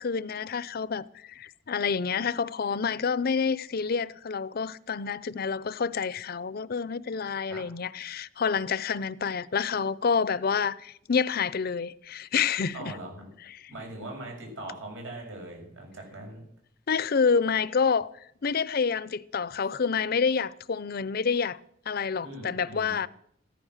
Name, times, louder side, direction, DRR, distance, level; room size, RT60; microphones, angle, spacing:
voice 1, 0.0-12.9 16.9-18.1 18.4-21.6 21.9-23.1, left 5 dB, 55° left, 0.6 m, -28 dB
voice 2, 12.7-13.3 13.7-16.4 22.2-23.0, right 1 dB, 85° right, 7.6 m, -41 dB
15.0 x 13.5 x 6.5 m
head